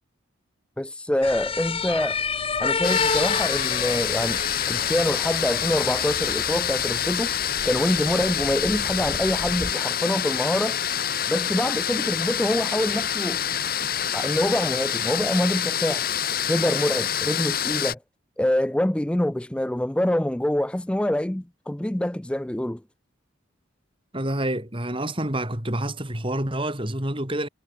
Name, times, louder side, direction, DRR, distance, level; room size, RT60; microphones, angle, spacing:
voice 1, 0.8-2.2 2.6-7.4 7.6-10.8 11.3-13.4 14.1-16.1 16.5-18.0 18.4-22.8, left 1 dB, 5° left, 0.3 m, -25 dB
sound 1, 1.2-9.7, left 5 dB, 25° left, 1.6 m, -30 dB
sound 2, 2.8-17.9, left 9 dB, 45° left, 1.7 m, -26 dB
voice 2, 24.1-27.5, right 1 dB, 25° right, 3.7 m, -28 dB
head